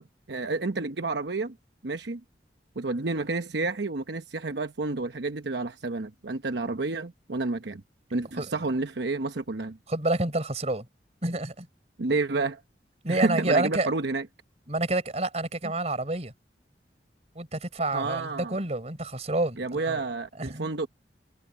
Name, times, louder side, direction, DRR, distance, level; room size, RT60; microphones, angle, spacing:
voice 1, 0.0-1.6 1.8-2.2 2.8-7.8 8.1-9.8 12.0-12.6 13.1-14.3 15.6-15.7 17.9-18.6 19.6-20.9, right 3 dB, 75° right, 1.0 m, -30 dB
voice 2, 9.9-10.9 11.2-11.7 13.0-13.9 14.7-16.3 17.4-20.0 20.4-20.7, right 2 dB, 40° right, 4.2 m, -28 dB
head